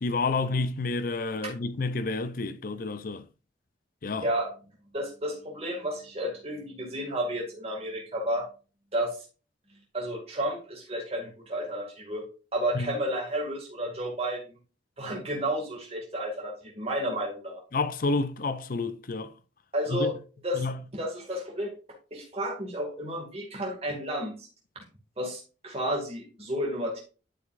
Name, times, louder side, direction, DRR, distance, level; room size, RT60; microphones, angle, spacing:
voice 1, 0.0-3.2 4.0-4.3 12.7-12.9 17.7-19.3 19.9-20.1 20.5-20.8, left 3 dB, 50° left, 0.5 m, -29 dB
voice 2, 4.2-4.5 4.9-8.5 8.9-9.2 9.9-12.2 12.5-14.5 15.0-17.6 19.7-20.1 20.4-20.6 20.9-21.7 22.1-24.5 25.2-27.0, equal, 35° right, 2.2 m, -31 dB
11.5 x 5.2 x 2.5 m
head